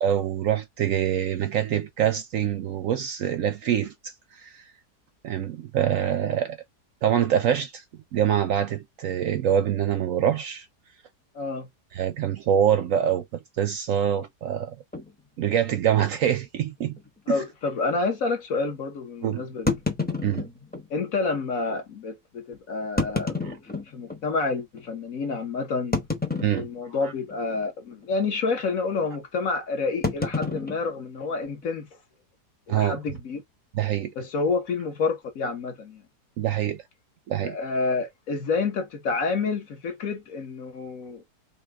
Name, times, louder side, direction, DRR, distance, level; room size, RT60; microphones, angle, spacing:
voice 1, 0.0-4.6 5.2-6.6 7.0-7.8 8.1-10.7 11.9-14.8 15.4-16.9 17.3-17.4 19.2-19.5 20.2-20.4 23.4-23.5 26.4-26.7 27.0-27.1 32.7-33.0 33.7-34.1 36.4-36.8 37.3-37.6, right 9 dB, 70° right, 0.8 m, -25 dB
voice 2, 11.3-11.7 17.3-19.7 20.9-23.3 23.9-26.0 26.5-31.9 32.7-33.4 34.1-36.0 37.4-41.2, left 4 dB, 60° left, 1.6 m, -28 dB
sound 1, 14.9-15.1 15.8-16.0 16.3-16.4 17.0-17.1 19.7-20.9 21.7-21.8 22.8-24.2 24.8-24.9 25.9-27.0 27.3-27.7 27.9-28.2 30.0-31.7, left 3 dB, 10° left, 0.5 m, -29 dB
5.7 x 2.5 x 3.5 m
omnidirectional pair, 1.7 m